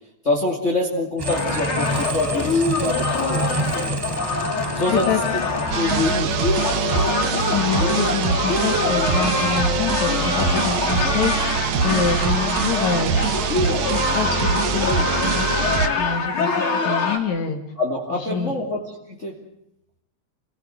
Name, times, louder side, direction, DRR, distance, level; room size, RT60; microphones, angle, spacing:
voice 1, 0.2-3.5 3.7-4.0 4.7-5.4 5.7-6.5 10.5-10.7 11.0-11.2 17.8-19.4, left 2 dB, 25° left, 0 dB, 2.9 m, -26 dB
sound 1, 1.2-17.2, left 4 dB, 45° left, 4.4 m, -24 dB
sound 2, 1.2-7.1, right 2 dB, 30° right, 0.4 m, -29 dB
voice 2, 4.9-5.2 7.5-11.3 11.6-15.5 16.0-17.6 18.3-18.5, left 6 dB, 75° left, 5 dB, 3.3 m, -26 dB
sound 3, 5.7-15.9, right 7 dB, 70° right, 2.5 m, -23 dB
28.5 x 17.5 x 7.8 m, 0.82 s
omnidirectional pair, 3.3 m